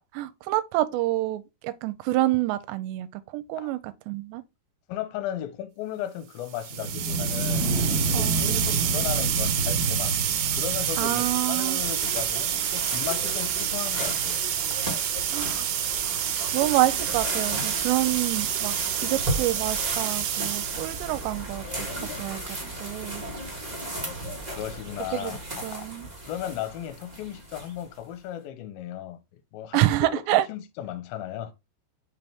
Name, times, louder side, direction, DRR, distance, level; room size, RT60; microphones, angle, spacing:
voice 1, 0.2-3.8 4.1-4.4 8.1-8.7 11.0-11.8 15.3-15.6 16.5-22.4 22.8-23.2 25.1-26.1 29.7-30.5, right 16 dB, 85° right, 2.8 m, -27 dB
voice 2, 4.9-7.7 8.0-10.2 10.5-14.4 14.7-14.8 24.5-25.9 26.2-31.5, left 11 dB, 75° left, 2.4 m, -36 dB
sound 1, 6.5-21.4, right 10 dB, 70° right, 2.6 m, -28 dB
sound 2, 6.7-11.6, right 2 dB, 40° left, 0.8 m, -29 dB
sound 3, 10.2-28.0, right 1 dB, 55° right, 0.4 m, -35 dB
5.6 x 5.5 x 3.5 m
omnidirectional pair, 4.9 m